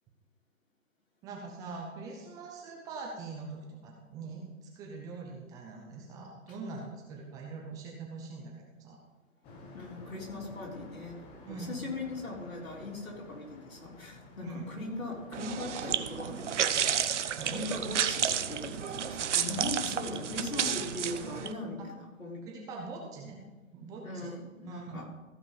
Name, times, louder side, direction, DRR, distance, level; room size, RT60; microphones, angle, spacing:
voice 1, 1.2-9.0 11.4-11.7 14.4-14.6 17.4-17.6 19.4-19.6 21.8-21.9 22.5-23.4 23.7-24.3 24.6-25.0, right 3 dB, 10° right, 0 dB, 0.6 m, -43 dB
sound 1, 9.4-21.6, left 2 dB, 15° left, 0.8 m, -52 dB
voice 2, 9.7-22.5 24.0-25.0, left 2 dB, 85° left, -2 dB, 3.7 m, -40 dB
sound 2, 15.3-21.5, right 8 dB, 60° right, 0.8 m, -31 dB
15.0 x 5.3 x 5.5 m, 1.2 s
figure-of-eight pair, 135°, 41 cm